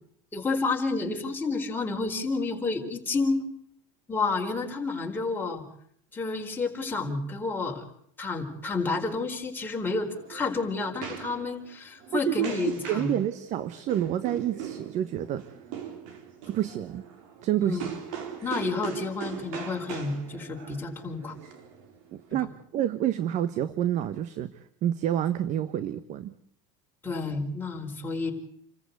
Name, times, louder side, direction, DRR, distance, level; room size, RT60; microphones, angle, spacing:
voice 1, 0.3-3.4 4.1-5.6 6.1-7.8 8.2-13.1 17.6-17.8 18.4-21.4 27.0-28.3, left 3 dB, 10° left, 0 dB, 4.5 m, -30 dB
sound 1, 9.8-22.3, right 8 dB, 70° right, 4.1 m, -41 dB
voice 2, 12.1-15.4 16.5-17.0 17.4-17.9 22.1-24.5 24.8-26.3, right 11 dB, 45° right, 14 dB, 1.2 m, -28 dB
28.0 x 14.5 x 8.3 m, 0.69 s
supercardioid pair, 125°, 17 cm